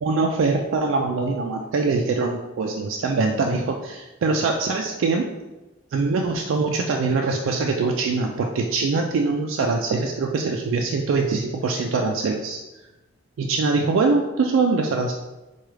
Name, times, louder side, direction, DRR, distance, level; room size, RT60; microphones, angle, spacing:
voice 1, 0.0-5.3 5.9-12.6 13.4-15.1, right 4 dB, 80° right, 2 dB, 0.3 m, -23 dB
4.7 x 2.3 x 3.1 m, 1.1 s
head